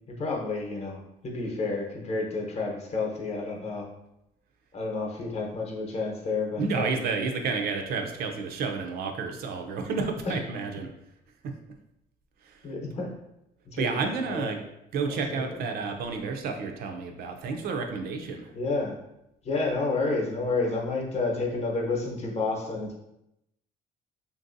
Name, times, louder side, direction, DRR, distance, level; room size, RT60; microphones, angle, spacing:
voice 1, 0.1-3.9 4.7-7.0 10.3-10.4 12.6-13.1 13.7-14.5 15.1-15.4 18.5-19.0 19.4-23.0, left 3 dB, 40° left, 0 dB, 0.8 m, -30 dB
voice 2, 6.6-10.9 12.4-12.6 13.8-14.6 14.9-18.5, right 4 dB, 65° right, 4 dB, 0.5 m, -30 dB
3.0 x 2.6 x 2.6 m, 0.85 s
cardioid pair, 110°, 17 cm